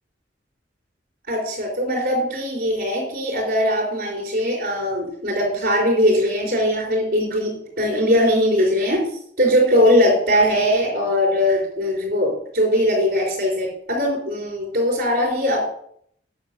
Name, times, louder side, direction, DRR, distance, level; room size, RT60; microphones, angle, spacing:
voice 1, 1.3-9.0 9.4-15.7, equal, 55° right, -2 dB, 3.9 m, -20 dB
9.2 x 6.7 x 6.6 m, 0.67 s
head